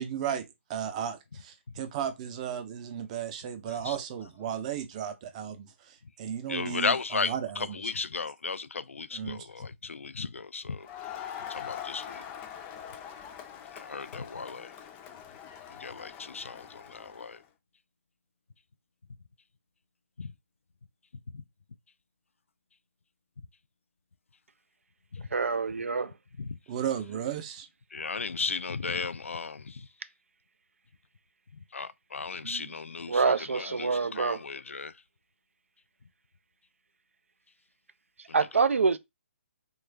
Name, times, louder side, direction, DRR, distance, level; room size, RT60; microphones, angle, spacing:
voice 1, 0.0-7.8 9.1-9.5 26.7-27.7, right 9 dB, 30° right, 0.6 m, -35 dB
voice 2, 3.7-4.0 6.5-10.9 11.5-12.2 13.7-14.7 15.8-17.4 20.2-20.3 21.3-21.4 25.1-25.3 26.4-26.6 27.9-29.9 31.7-35.0 38.3-38.6, left 4 dB, 85° left, 0.4 m, -35 dB
Crowd, 10.8-17.4, left 9 dB, 20° left, 0.5 m, -43 dB
voice 3, 25.3-26.1 32.4-32.6 33.1-34.4 38.3-39.0, right 4 dB, 80° right, 0.4 m, -26 dB
3.1 x 2.4 x 3.3 m
figure-of-eight pair, 140°, 7 cm